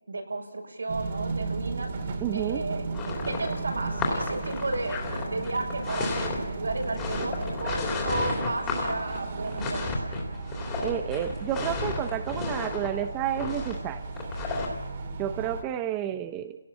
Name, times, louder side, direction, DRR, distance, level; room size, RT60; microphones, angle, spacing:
voice 1, 0.1-1.9 2.3-2.9 3.3-5.0 5.3-10.1, right 2 dB, 90° right, 1 dB, 5.9 m, -33 dB
sound 1, 0.9-15.6, right 3 dB, 35° right, 2.5 m, -35 dB
voice 2, 2.2-2.6 10.8-14.0 15.2-16.6, right 11 dB, 15° right, 9 dB, 0.7 m, -30 dB
sound 2, 2.9-14.8, left 3 dB, 15° left, 3.2 m, -32 dB
30.0 x 17.5 x 7.4 m, 1.2 s
hypercardioid pair, 170°, 0 cm